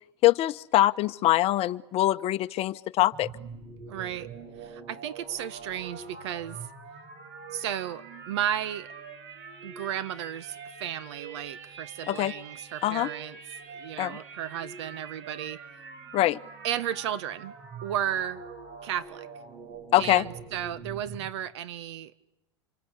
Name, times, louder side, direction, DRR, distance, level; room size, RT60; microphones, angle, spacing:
voice 1, 0.2-3.3 12.1-12.3 12.8-13.1 14.0-14.2 16.1-16.4 19.9-20.2, left 15 dB, 45° left, 10 dB, 1.0 m, -23 dB
sound 1, 3.1-21.3, right 5 dB, 55° right, 6.4 m, -44 dB
voice 2, 3.8-4.3 4.6-6.6 7.5-8.9 9.6-15.6 16.6-17.5 17.8-18.4 18.8-19.3 20.0-22.1, right 10 dB, 70° right, 14 dB, 1.7 m, -34 dB
27.0 x 25.5 x 8.5 m, 0.93 s
hypercardioid pair, 105°, 15 cm